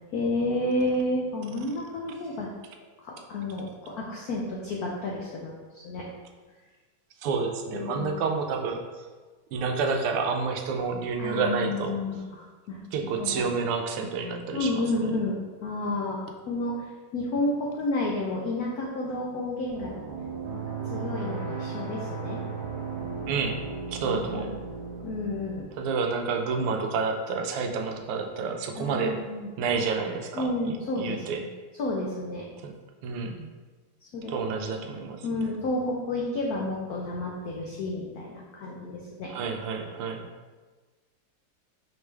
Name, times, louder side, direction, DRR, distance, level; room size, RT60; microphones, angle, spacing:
voice 1, 0.1-2.5 3.0-6.0 7.7-8.2 11.2-12.8 13.2-13.5 14.5-16.2 16.5-16.7 17.1-19.9 20.5-22.4 24.1-24.5 25.0-25.7 28.7-29.5 30.3-31.5 31.8-32.4 34.1-34.3 35.2-39.3, left 2 dB, 85° left, -3 dB, 0.8 m, -31 dB
voice 2, 7.2-9.1 9.5-12.0 12.9-14.8 23.3-23.6 23.9-24.5 25.8-29.2 29.6-31.4 32.6-32.7 33.0-33.5 34.3-35.4 39.3-40.3, right 5 dB, 90° right, 4 dB, 1.5 m, -29 dB
sound 1, 19.7-25.6, right 5 dB, 70° right, 1.3 m, -35 dB
5.0 x 3.3 x 3.2 m, 1.3 s
omnidirectional pair, 2.3 m